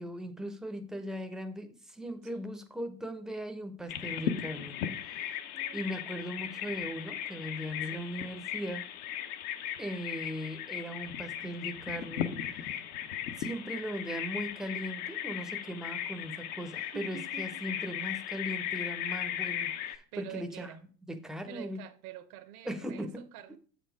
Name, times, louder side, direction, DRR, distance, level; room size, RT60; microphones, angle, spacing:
voice 1, 0.0-4.8 5.1-5.2 5.7-8.9 9.8-12.8 13.4-20.8 21.1-21.8 22.6-23.2 23.5-23.6, equal, ahead, 0.7 m, -39 dB
Bird vocalization bird call bird song, 3.9-20.0, left 10 dB, 60° left, 1.0 m, -37 dB
voice 2, 16.6-17.5 20.1-20.8 21.5-23.6, right 10 dB, 60° right, 1.0 m, -47 dB
7.4 x 5.1 x 5.0 m
hypercardioid pair, 100°, 49 cm